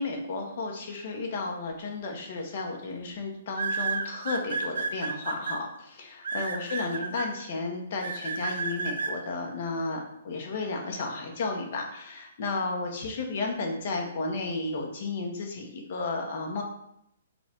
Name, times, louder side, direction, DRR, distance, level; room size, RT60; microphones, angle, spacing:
voice 1, 0.0-16.6, left 3 dB, 35° left, 1 dB, 0.8 m, -33 dB
sound 1, 2.0-2.3 3.5-5.6 6.2-7.3 8.0-9.1, right 4 dB, 75° right, 0.6 m, -31 dB
5.2 x 2.3 x 4.3 m, 0.77 s
hypercardioid pair, 180°, 0 cm